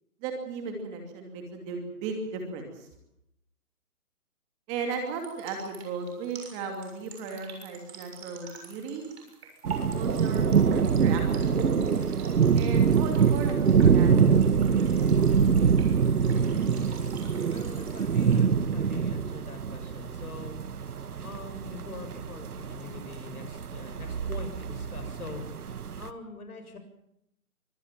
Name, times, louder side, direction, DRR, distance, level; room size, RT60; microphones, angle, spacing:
voice 1, 0.2-2.9 4.7-9.0 10.0-12.0 12.5-15.5, right 5 dB, 15° right, 4 dB, 2.6 m, -36 dB
sound 1, 5.1-18.4, right 5 dB, 45° right, 7.0 m, -47 dB
sound 2, 9.6-26.1, right 6 dB, 80° right, 1.6 m, -25 dB
voice 2, 17.5-20.6 21.2-25.4 26.0-26.8, left 3 dB, 75° left, 7 dB, 7.1 m, -43 dB
24.5 x 19.0 x 7.4 m, 0.78 s
hypercardioid pair, 165°, 45 cm